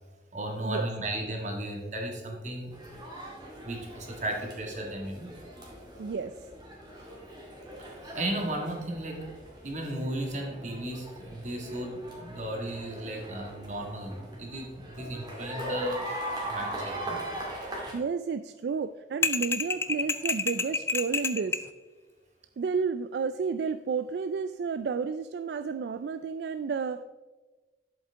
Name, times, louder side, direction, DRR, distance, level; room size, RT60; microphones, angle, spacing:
voice 1, 0.3-2.7 3.6-5.3 7.8-9.4 9.6-17.2, right 1 dB, 40° right, 1 dB, 2.0 m, -35 dB
sound 1, 2.7-17.9, right 1 dB, 25° right, 2.2 m, -41 dB
voice 2, 6.0-6.3 17.9-21.6 22.6-27.0, right 5 dB, 65° right, 12 dB, 0.3 m, -31 dB
sound 2, 19.2-21.7, left 3 dB, 15° left, 0.4 m, -29 dB
11.0 x 8.0 x 3.6 m, 1.3 s
head